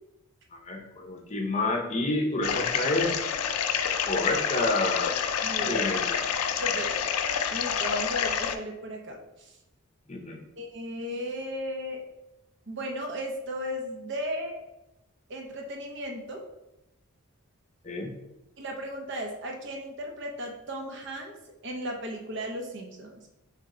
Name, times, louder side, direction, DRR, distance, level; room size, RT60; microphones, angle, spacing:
voice 1, 0.5-3.3 4.1-5.2 5.6-6.2 10.1-10.4 17.8-18.1, left 2 dB, 30° left, 2 dB, 0.7 m, -29 dB
sound 1, 2.4-8.5, left 7 dB, 85° left, 0.4 m, -28 dB
voice 2, 5.4-6.0 6.6-6.9 7.5-9.6 10.6-12.0 12.7-14.6 15.3-16.4 18.6-21.3 21.6-23.2, equal, 55° right, 1 dB, 0.7 m, -35 dB
4.3 x 3.3 x 3.7 m, 0.93 s
head